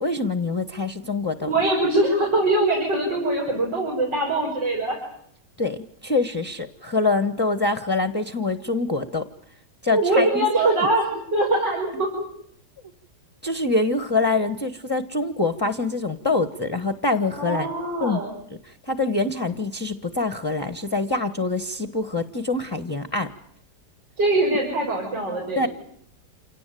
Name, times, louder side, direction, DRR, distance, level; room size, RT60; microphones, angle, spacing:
voice 1, 0.0-1.5 5.6-9.3 9.8-10.5 13.4-17.7 18.0-18.2 18.6-23.3 25.6-25.7, left 3 dB, 15° left, 11 dB, 1.1 m, -25 dB
voice 2, 1.4-5.0 9.9-12.3 17.4-18.3 24.2-25.7, right 2 dB, 75° right, -2 dB, 6.7 m, -22 dB
28.0 x 18.0 x 9.2 m, 0.68 s
omnidirectional pair, 1.9 m